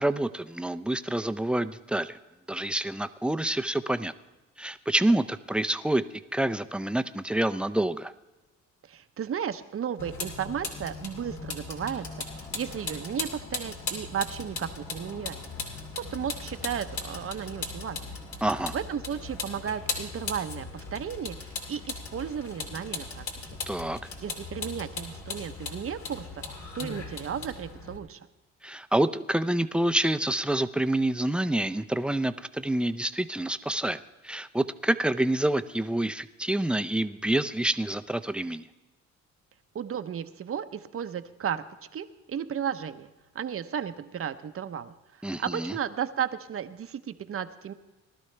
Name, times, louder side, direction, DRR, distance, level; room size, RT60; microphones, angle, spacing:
voice 1, 0.0-2.2 2.5-4.1 4.6-6.0 6.3-8.1 18.4-18.8 23.7-24.0 28.6-38.6 45.2-45.7, right 1 dB, 5° right, 11 dB, 0.5 m, -27 dB
voice 2, 8.9-12.0 12.3-15.4 15.9-18.1 18.7-23.2 24.2-26.2 26.7-28.2 39.7-41.6 41.9-47.7, right 8 dB, 50° right, 10 dB, 0.8 m, -34 dB
Vehicle, 10.0-28.0, left 4 dB, 70° left, 2.7 m, -38 dB
19.5 x 12.0 x 3.3 m, 1.1 s
cardioid pair, 90°, 30 cm